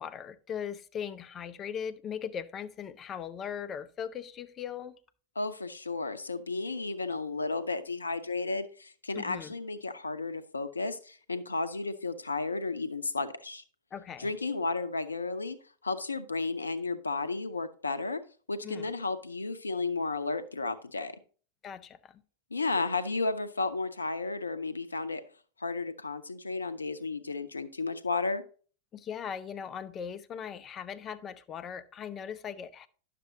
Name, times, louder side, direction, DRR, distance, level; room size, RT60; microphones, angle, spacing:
voice 1, 0.0-5.0 9.1-9.5 13.9-14.3 18.6-18.9 21.6-22.2 28.9-32.9, left 8 dB, 25° left, 0.6 m, -39 dB
voice 2, 5.4-13.6 14.2-15.6 15.8-18.2 18.5-21.1 22.5-25.2 25.6-28.4, left 3 dB, 80° left, 0.6 m, -33 dB
10.0 x 6.7 x 2.7 m
figure-of-eight pair, 90°, 0 cm